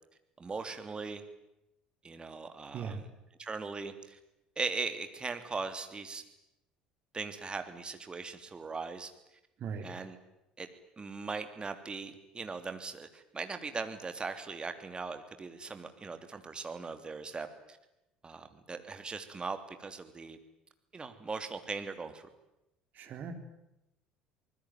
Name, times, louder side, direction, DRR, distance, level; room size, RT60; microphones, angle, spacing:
voice 1, 0.4-1.2 2.0-3.1 3.4-4.2 4.6-6.2 7.1-9.1 9.8-10.2 10.6-10.7 11.0-17.8 18.2-20.4 20.9-22.3, right 4 dB, 25° right, 8 dB, 3.2 m, -39 dB
voice 2, 9.6-9.9 22.9-23.3, right 6 dB, 45° right, 7 dB, 3.8 m, -39 dB
26.5 x 20.5 x 9.3 m, 0.89 s
figure-of-eight pair, 60°, 4 cm